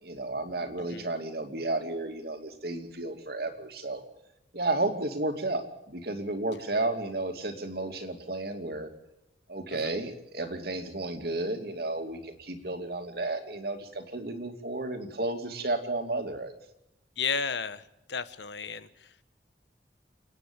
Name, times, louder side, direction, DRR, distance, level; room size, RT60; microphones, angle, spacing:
voice 1, 0.0-4.0 4.5-8.9 9.5-16.5, right 2 dB, 60° right, 6 dB, 2.6 m, -32 dB
voice 2, 17.2-17.8 18.1-19.2, left 6 dB, 75° left, 13 dB, 1.2 m, -33 dB
29.5 x 10.0 x 8.8 m, 0.88 s
head